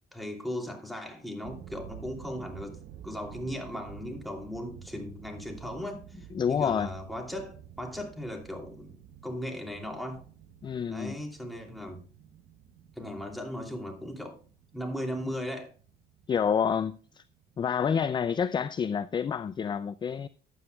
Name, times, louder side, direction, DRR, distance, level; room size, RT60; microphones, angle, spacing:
voice 1, 0.1-10.2 10.9-12.0 13.0-14.4 14.7-15.7, equal, ahead, 2.8 m, -37 dB
sound 1, 1.4-17.7, right 9 dB, 65° right, 0.8 m, -50 dB
voice 2, 6.3-6.9 10.6-11.2 16.3-17.2 17.6-20.3, left 7 dB, 25° left, 0.4 m, -28 dB
14.5 x 9.5 x 2.3 m
cardioid pair, 110°, 17 cm